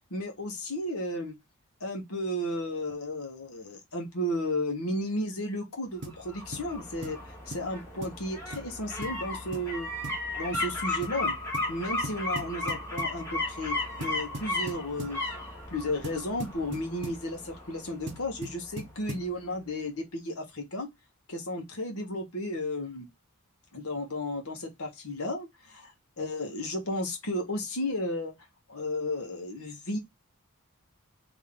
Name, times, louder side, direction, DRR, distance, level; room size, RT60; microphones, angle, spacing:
voice 1, 0.1-1.3 1.8-7.2 7.5-9.9 10.3-11.3 11.7-15.2 15.7-20.9 21.3-23.1 23.7-28.3 28.7-30.0, left 1 dB, 70° left, 1.4 m, -33 dB
sound 1, 6.0-18.9 19.2-19.3, left 2 dB, 10° left, 1.5 m, -35 dB
sound 2, 6.0-6.2 6.5-6.7 7.0-7.2 7.5-7.7 8.0-8.2 8.5-8.7 9.0-9.2 9.5-9.7 10.0-10.3 10.5-10.7 11.0-11.2 11.5-11.7 12.0-13.2 14.0-15.2 16.0-17.2 18.1-19.3, right 1 dB, 50° right, 1.0 m, -40 dB
3.6 x 3.1 x 3.7 m
head